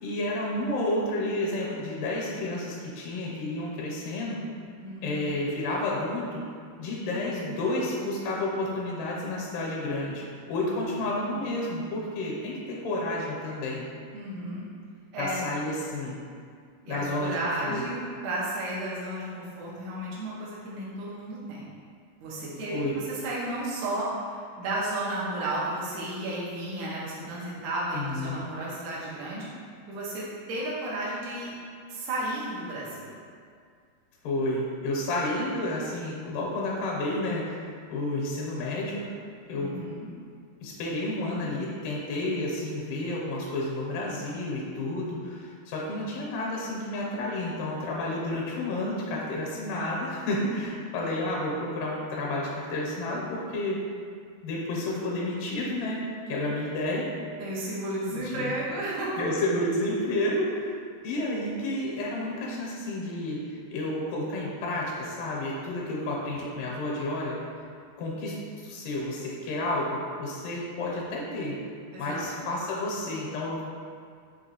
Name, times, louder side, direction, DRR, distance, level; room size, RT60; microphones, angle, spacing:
voice 1, 0.0-4.4 5.0-6.4 6.8-13.9 15.2-16.2 16.8-17.4 17.6-17.8 22.7-22.9 27.9-28.4 34.2-39.1 39.5-39.8 40.6-53.8 54.4-57.1 58.1-58.5 59.2-60.8 61.0-67.4 68.0-71.6 72.0-73.6, left 1 dB, 90° left, -4 dB, 2.3 m, -31 dB
voice 2, 4.8-5.3 10.7-11.1 14.1-14.7 15.1-15.5 16.9-21.7 22.2-29.5 29.9-31.5 31.9-33.1 39.5-40.1 50.6-50.7 57.4-59.1 71.9-72.3, right 1 dB, 75° right, -7 dB, 2.2 m, -33 dB
5.8 x 2.9 x 2.9 m, 2.2 s
omnidirectional pair, 3.7 m